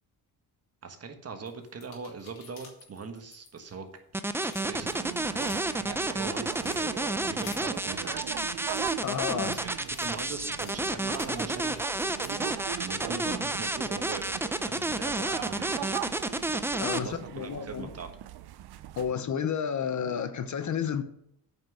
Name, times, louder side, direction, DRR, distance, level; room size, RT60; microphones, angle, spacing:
voice 1, 0.8-3.9 4.6-8.2 9.4-11.8 12.8-14.4 14.7-16.0 16.9-18.1, right 4 dB, 40° right, 1.4 m, -41 dB
sound 1, 1.5-4.0 4.3-5.8 6.2-6.8 7.4-7.6 8.3-12.5, left 5 dB, 75° left, 3.1 m, -50 dB
sound 2, 4.1-17.0, right 2 dB, 5° right, 0.5 m, -30 dB
sound 3, 4.7-19.1, right 12 dB, 85° right, 0.7 m, -40 dB
voice 2, 9.0-9.5 16.8-17.9 19.0-21.0, left 7 dB, 50° left, 0.9 m, -31 dB
8.9 x 5.9 x 6.3 m
cardioid pair, 130°, 38 cm